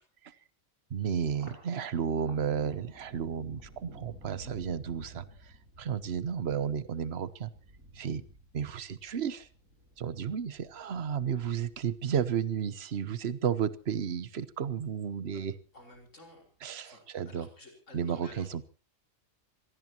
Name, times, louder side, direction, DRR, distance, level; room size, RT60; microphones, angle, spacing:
voice 1, 0.9-7.5 7.9-8.2 8.5-9.5 10.0-15.5 16.6-17.5 17.9-18.6, right 7 dB, 55° right, 15 dB, 1.2 m, -33 dB
Thunder, 1.3-13.9 14.3-15.1 15.5-16.3, right 1 dB, 75° right, 7.0 m, -53 dB
voice 2, 15.7-16.4 16.8-18.5, left 1 dB, 65° left, 3 dB, 5.6 m, -52 dB
26.0 x 18.0 x 3.0 m, 0.36 s
omnidirectional pair, 1.4 m